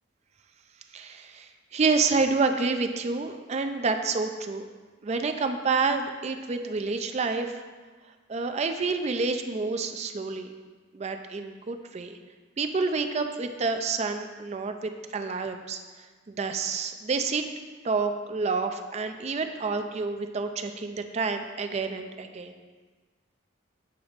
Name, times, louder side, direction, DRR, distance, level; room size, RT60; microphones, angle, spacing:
voice 1, 0.9-4.6 5.0-7.5 8.3-10.5 10.9-12.2 12.6-15.8 16.3-17.4 17.8-22.6, right 4 dB, 35° right, 6 dB, 0.4 m, -28 dB
7.9 x 3.0 x 5.0 m, 1.4 s
head